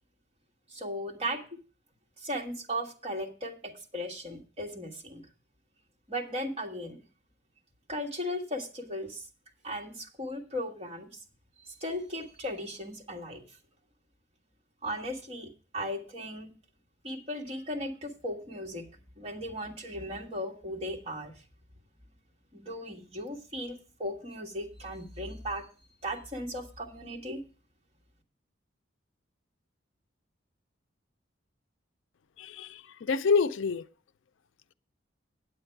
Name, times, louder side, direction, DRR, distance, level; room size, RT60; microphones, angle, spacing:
voice 1, 0.7-1.4 2.2-5.2 6.1-7.0 7.9-9.3 9.6-11.2 11.7-13.6 14.8-16.5 17.0-21.3 22.5-25.7 26.0-27.4, equal, 30° right, 1.5 m, -37 dB
voice 2, 32.4-33.9, left 5 dB, 70° left, 0.4 m, -27 dB
8.8 x 8.5 x 4.5 m
head